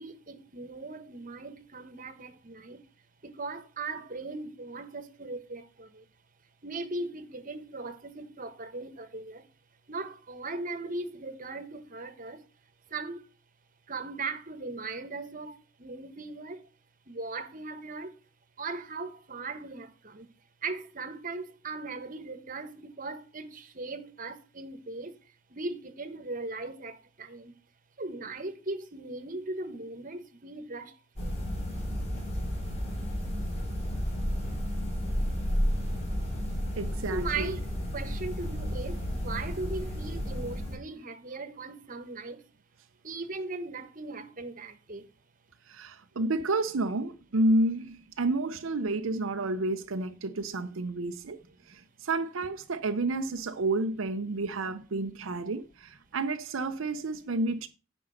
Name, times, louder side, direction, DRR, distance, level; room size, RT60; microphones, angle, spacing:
voice 1, 0.0-2.9 3.2-6.1 6.6-9.5 9.9-12.5 12.9-13.3 13.9-16.7 17.1-18.2 18.6-20.3 20.6-27.5 28.0-31.3 37.1-37.6 37.9-42.4 43.0-45.1 51.7-51.8, right 3 dB, 40° right, 1.2 m, -38 dB
sound 1, 31.2-40.8, equal, 30° left, 5.0 m, -32 dB
voice 2, 36.8-37.5 45.7-57.7, right 2 dB, 75° right, 0.6 m, -30 dB
9.7 x 5.4 x 6.4 m
head